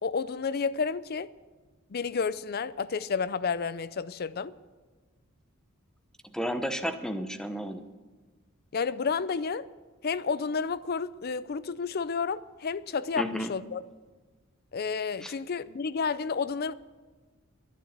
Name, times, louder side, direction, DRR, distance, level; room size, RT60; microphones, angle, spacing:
voice 1, 0.0-1.3 1.9-4.5 8.7-9.7 10.0-13.8 14.7-16.7, left 5 dB, 50° left, 0.5 m, -31 dB
voice 2, 6.2-7.9 13.2-13.5 15.2-15.3, equal, 5° left, 0.8 m, -32 dB
12.5 x 11.0 x 8.1 m
head